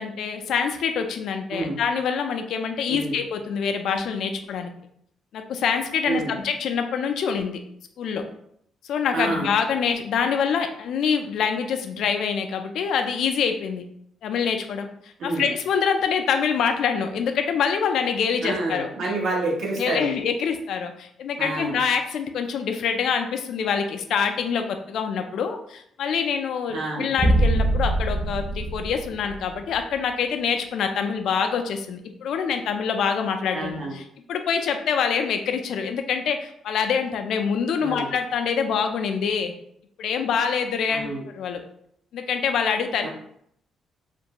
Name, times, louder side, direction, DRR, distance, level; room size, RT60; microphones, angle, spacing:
voice 1, 0.0-4.7 5.3-7.6 8.0-8.2 8.9-13.8 14.2-14.9 15.2-18.9 19.8-34.0 34.3-39.5 40.0-41.6 42.1-43.1, left 6 dB, 75° left, 6 dB, 0.3 m, -25 dB
voice 2, 9.1-9.5 15.2-15.5 18.4-20.1 21.4-21.8 26.7-27.1 33.5-33.9 37.8-38.1 40.9-41.2 43.0-43.1, right 2 dB, 70° right, -3 dB, 0.9 m, -28 dB
sound 1, 27.2-29.8, right 1 dB, 25° right, 0.3 m, -23 dB
2.5 x 2.2 x 2.8 m, 0.70 s
cardioid pair, 90°, 0 cm